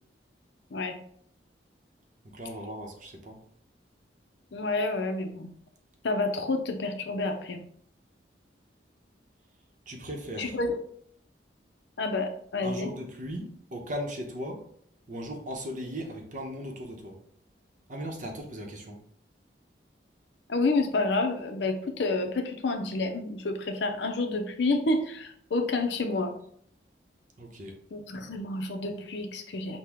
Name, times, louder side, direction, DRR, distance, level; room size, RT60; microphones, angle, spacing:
voice 1, 2.3-3.4 9.9-10.5 12.6-14.6 15.1-17.2 17.9-19.0 27.4-27.7, equal, 45° right, 2 dB, 0.8 m, -37 dB
voice 2, 4.5-5.5 6.0-7.6 10.4-10.8 12.0-12.9 20.5-26.3 27.9-29.8, left 2 dB, 70° left, 6 dB, 0.6 m, -29 dB
6.1 x 2.2 x 3.5 m, 0.65 s
head